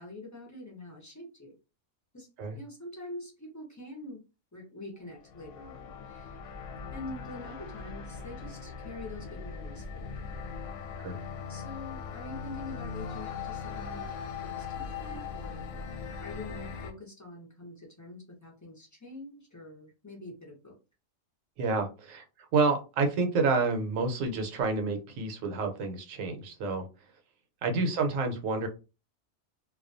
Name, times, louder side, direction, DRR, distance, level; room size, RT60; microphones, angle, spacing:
voice 1, 0.0-1.6 2.1-2.3 2.5-4.2 4.5-6.4 6.9-10.3 11.5-14.1 14.4-15.7 16.2-20.8 27.7-28.0, left 2 dB, 30° left, -1 dB, 0.3 m, -45 dB
sound 1, 5.0-16.9, left 5 dB, 70° left, 0.9 m, -40 dB
voice 2, 21.6-22.2 22.5-26.9 27.6-28.7, right 4 dB, 75° right, 4 dB, 1.0 m, -29 dB
2.3 x 2.2 x 2.5 m, 0.30 s
omnidirectional pair, 1.4 m